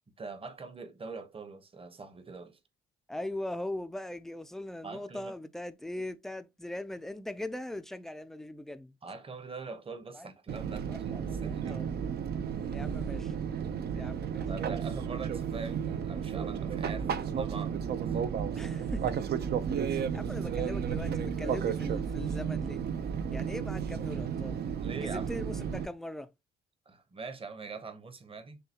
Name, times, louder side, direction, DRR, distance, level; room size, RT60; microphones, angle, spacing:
voice 1, 0.2-2.6 4.8-5.3 9.0-11.8 13.9-14.1 14.4-17.8 18.1-18.2 24.8-25.3 26.9-28.6, right 4 dB, 25° right, 1.0 m, -43 dB
voice 2, 3.1-9.0 10.1-10.3 10.9-11.9 12.7-13.3 14.0-14.5 18.6-19.2 19.9-22.8 23.3-24.6 25.0-26.3, left 1 dB, ahead, 0.4 m, -40 dB
Fixed-wing aircraft airplane, 10.5-25.9, right 7 dB, 55° right, 0.6 m, -33 dB
6.7 x 2.3 x 2.8 m
cardioid pair, 90°, 20 cm